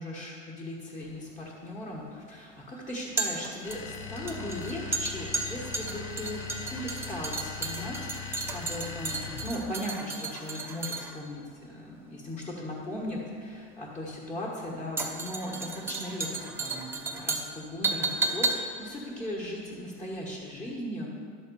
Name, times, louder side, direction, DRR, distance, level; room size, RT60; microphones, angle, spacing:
voice 1, 0.0-6.4 6.7-21.1, left 1 dB, 20° left, -4 dB, 1.4 m, -38 dB
sound 1, 1.0-20.3 20.6-20.7, right 3 dB, 5° right, 0.7 m, -34 dB
sound 2, 3.6-9.8, left 6 dB, 85° left, 1.1 m, -40 dB
11.5 x 4.1 x 6.9 m, 2.2 s
supercardioid pair, 150°, 33 cm